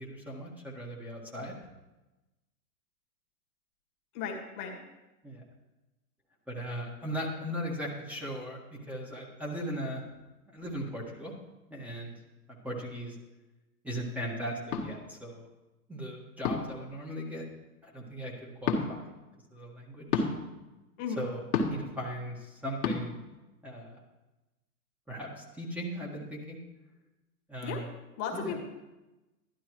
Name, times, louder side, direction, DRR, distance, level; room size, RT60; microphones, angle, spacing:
voice 1, 0.0-1.5 5.2-5.4 6.5-10.0 10.5-11.3 11.7-12.1 12.5-13.2 13.8-15.5 15.9-17.5 17.8-19.1 19.5-20.3 21.2-23.2 23.6-24.0 25.1-26.6 27.5-27.9 28.3-28.6, equal, 5° right, -3 dB, 1.7 m, -38 dB
voice 2, 4.1-4.8 21.0-21.2 27.6-27.9 28.2-28.6, left 6 dB, 40° left, 1 dB, 1.8 m, -35 dB
sound 1, 14.7-14.9 16.4-16.8 18.6-18.8 20.1-20.3 21.5-21.9 22.8-23.0, left 5 dB, 65° left, 1.9 m, -28 dB
12.0 x 11.5 x 3.1 m, 1.0 s
hypercardioid pair, 110°, 47 cm